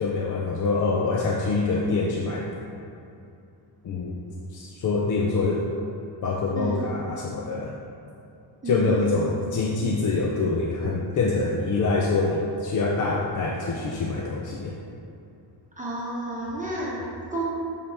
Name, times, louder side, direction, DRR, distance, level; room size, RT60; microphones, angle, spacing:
voice 1, 0.0-2.5 3.8-4.2 4.5-5.7 6.2-7.7 8.7-14.8, left 3 dB, 45° left, -1 dB, 0.5 m, -25 dB
voice 2, 6.6-6.9 8.6-9.3 15.8-17.4, right 1 dB, 15° right, -6 dB, 0.9 m, -31 dB
8.7 x 4.1 x 3.4 m, 2.6 s
cardioid pair, 140°, 45 cm